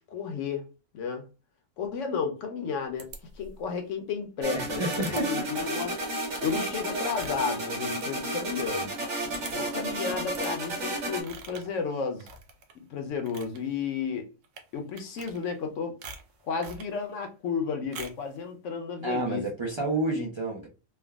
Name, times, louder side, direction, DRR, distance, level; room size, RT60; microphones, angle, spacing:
voice 1, 0.1-0.7 0.9-1.2 1.8-3.1 3.4-4.8 5.1-6.0 6.4-8.9 9.5-12.3 12.9-14.3 14.7-16.0 16.4-19.5, left 5 dB, 65° left, 0.9 m, -32 dB
sound 1, 3.0-3.7 4.9-5.2 5.5-5.8 6.3-8.7 9.0-9.1 9.3-9.8 10.3-10.5 11.2-11.8 12.2-12.8 13.1-13.6 14.4-14.7 15.0-15.7 16.0-16.9 17.9-18.3, right 4 dB, 80° right, 1.0 m, -45 dB
sound 2, 4.4-11.2, right 1 dB, 60° right, 1.4 m, -32 dB
voice 2, 4.5-5.5 19.0-20.7, right 2 dB, 45° right, 0.3 m, -30 dB
3.3 x 2.2 x 2.2 m
omnidirectional pair, 1.4 m